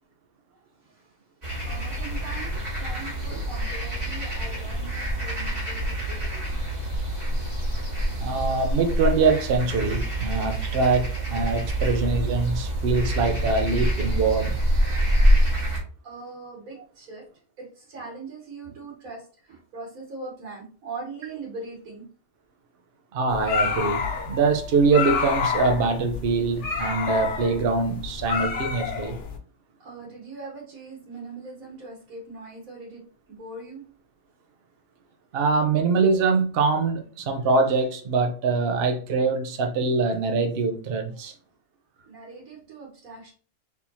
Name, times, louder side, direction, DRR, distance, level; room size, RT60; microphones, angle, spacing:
voice 1, 0.8-1.2 1.7-6.6 14.1-14.2 16.0-17.3 17.6-22.1 29.8-33.9 42.0-43.3, right 3 dB, 90° right, 1.6 m, -41 dB
sound 1, 1.4-15.8, right 1 dB, 30° right, 1.6 m, -26 dB
voice 2, 8.2-14.6 23.1-29.2 35.3-41.3, right 4 dB, 55° right, 0.8 m, -23 dB
sound 2, 23.3-29.4, left 6 dB, 65° left, 1.0 m, -29 dB
4.4 x 3.5 x 2.7 m
omnidirectional pair, 1.4 m